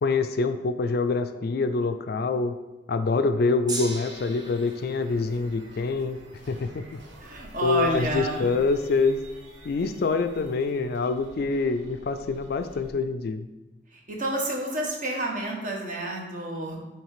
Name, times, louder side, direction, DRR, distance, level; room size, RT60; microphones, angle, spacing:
voice 1, 0.0-2.6 2.9-6.2 6.5-7.0 7.6-9.2 9.6-13.5, left 4 dB, 55° left, 9 dB, 0.4 m, -25 dB
Gong, 3.7-10.0 10.8-10.9, right 2 dB, 20° right, 0.7 m, -42 dB
sound 1, 3.9-12.9, equal, 65° right, 1.1 m, -48 dB
voice 2, 7.2-8.5 13.9-16.8, right 2 dB, 40° right, 0 dB, 1.2 m, -29 dB
7.3 x 3.2 x 4.8 m, 1.1 s
head